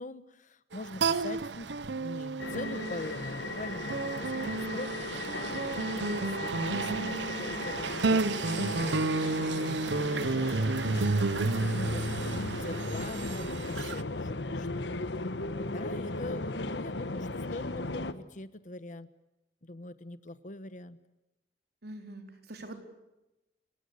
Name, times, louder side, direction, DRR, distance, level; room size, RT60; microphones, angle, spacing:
voice 1, 0.0-4.9 5.7-9.1 9.5-11.2 11.7-12.0 12.6-14.9 15.6-19.1 19.6-21.0, left 2 dB, 45° left, 14 dB, 1.2 m, -42 dB
sound 1, 0.7-14.0, right 3 dB, 85° right, 0.9 m, -31 dB
sound 2, 2.4-18.1, left 2 dB, 85° left, 1.3 m, -37 dB
sound 3, 3.4-11.6, left 1 dB, 5° right, 3.5 m, -53 dB
voice 2, 12.0-12.5 21.8-22.8, right 1 dB, 65° right, 5 dB, 4.2 m, -45 dB
29.5 x 17.5 x 8.2 m, 0.95 s
head